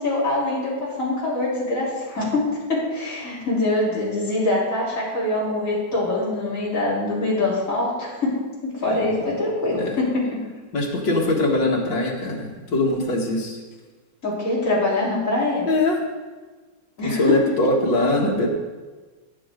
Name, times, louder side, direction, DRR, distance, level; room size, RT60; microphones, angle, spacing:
voice 1, 0.0-10.4 14.2-15.7 17.0-17.6, left 2 dB, 45° left, -8 dB, 4.4 m, -24 dB
voice 2, 8.9-9.3 9.7-9.9 10.7-13.6 15.7-16.0 17.0-18.5, left 2 dB, 80° left, -2 dB, 2.8 m, -22 dB
18.5 x 8.8 x 3.9 m, 1.3 s
omnidirectional pair, 2.0 m